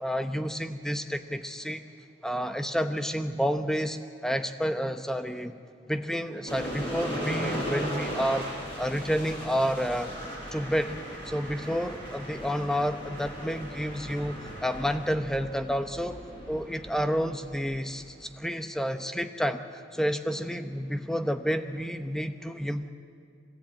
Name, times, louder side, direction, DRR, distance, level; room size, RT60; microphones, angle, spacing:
voice 1, 0.0-1.8 2.2-5.6 5.9-8.5 8.8-10.1 10.5-11.0 11.3-22.9, equal, 5° left, 8 dB, 0.9 m, -30 dB
sound 1, 6.5-18.2, equal, 25° left, 7.0 m, -37 dB
24.5 x 18.5 x 8.9 m, 2.4 s
head